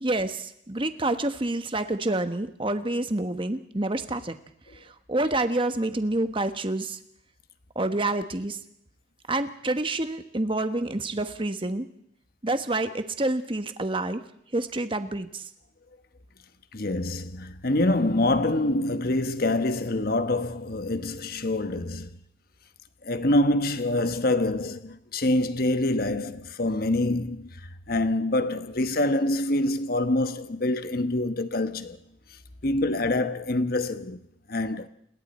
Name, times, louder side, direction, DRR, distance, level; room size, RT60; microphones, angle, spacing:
voice 1, 0.0-4.3 4.7-7.0 7.7-8.6 9.3-11.9 12.4-14.2 14.5-15.5, right 2 dB, 30° right, 1.2 m, -28 dB
voice 2, 16.7-22.1 23.0-32.0 32.6-34.9, left 2 dB, 55° left, 1.2 m, -26 dB
28.5 x 21.0 x 4.3 m
head